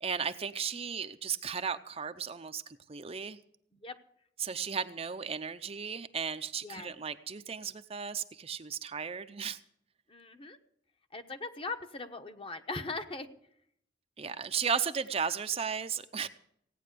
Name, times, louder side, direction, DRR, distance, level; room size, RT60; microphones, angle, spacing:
voice 1, 0.0-3.4 4.4-9.6 14.2-16.3, right 6 dB, 35° right, 10 dB, 0.6 m, -35 dB
voice 2, 10.1-10.6 11.1-13.3, left 3 dB, 30° left, 7 dB, 1.1 m, -40 dB
17.0 x 9.3 x 6.8 m, 0.71 s
head